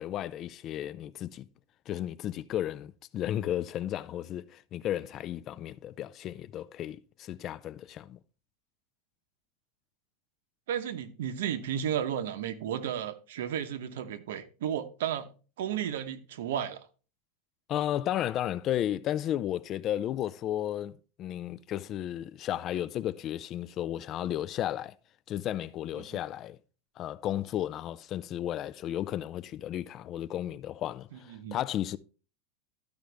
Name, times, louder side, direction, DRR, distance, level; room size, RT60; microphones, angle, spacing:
voice 1, 0.0-1.5 1.9-8.2 17.7-24.9 25.3-26.6 27.0-32.0, left 12 dB, 35° left, 0.4 m, -33 dB
voice 2, 10.7-15.3 15.6-16.9 26.0-26.2 31.1-31.6, right 9 dB, 85° right, 1.0 m, -33 dB
12.5 x 5.2 x 3.4 m
supercardioid pair, 145°, 0 cm